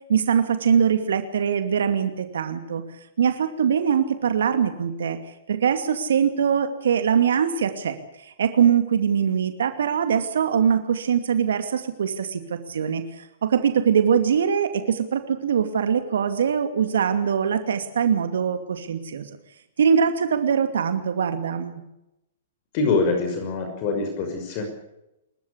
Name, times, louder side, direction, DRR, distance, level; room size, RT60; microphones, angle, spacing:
voice 1, 0.1-2.8 3.2-5.2 5.5-8.0 8.2-19.3 19.8-21.8, right 7 dB, 70° right, 8 dB, 2.4 m, -22 dB
voice 2, 22.7-24.6, left 4 dB, 45° left, 5 dB, 5.9 m, -24 dB
28.0 x 14.5 x 8.5 m, 0.87 s
hypercardioid pair, 115°, 0 cm